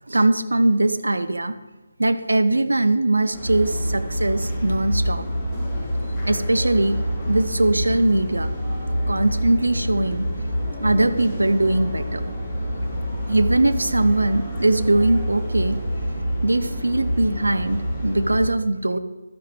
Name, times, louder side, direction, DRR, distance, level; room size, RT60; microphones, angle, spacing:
voice 1, 0.1-1.5 2.0-5.2 6.3-7.0 7.3-8.5 9.1-10.3 10.8-12.2 13.3-15.8 16.4-19.0, right 2 dB, 70° right, 10 dB, 0.7 m, -21 dB
sound 1, 3.3-18.4, equal, ahead, 3.2 m, -27 dB
12.5 x 9.5 x 3.2 m, 1.1 s
figure-of-eight pair, 150°, 0 cm